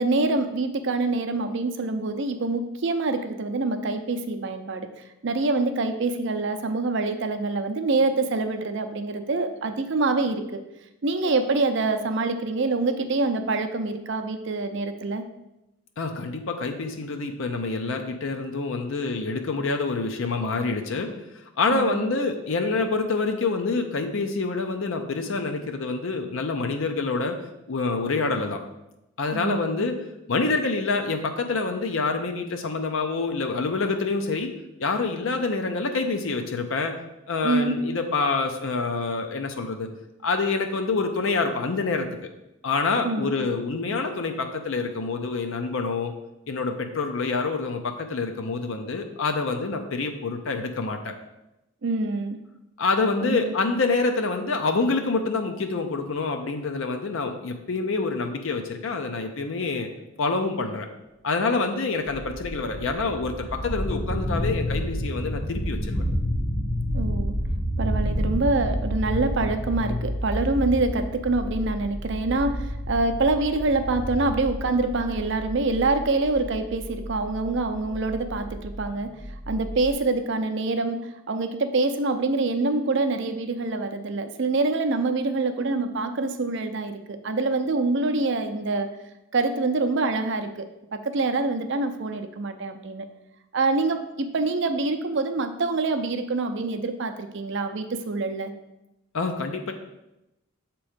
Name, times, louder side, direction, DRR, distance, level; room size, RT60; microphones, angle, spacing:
voice 1, 0.0-4.9 5.2-10.6 11.0-15.2 21.7-22.1 29.3-29.9 37.4-37.8 43.0-43.5 51.8-52.4 53.2-53.5 66.9-67.3 67.8-79.1 79.5-81.0 81.3-88.9 89.3-90.7 90.9-93.1 93.5-98.5, right 3 dB, 55° right, 8 dB, 0.5 m, -25 dB
voice 2, 16.0-27.4 27.7-28.6 29.2-34.5 34.8-37.0 37.3-39.9 40.2-42.1 42.6-46.1 46.5-51.1 52.8-59.9 60.2-60.9 61.2-66.0 99.1-99.7, left 3 dB, 65° left, 5 dB, 0.5 m, -27 dB
sound 1, 62.1-79.9, equal, ahead, 0.7 m, -30 dB
7.1 x 3.0 x 5.0 m, 0.92 s
head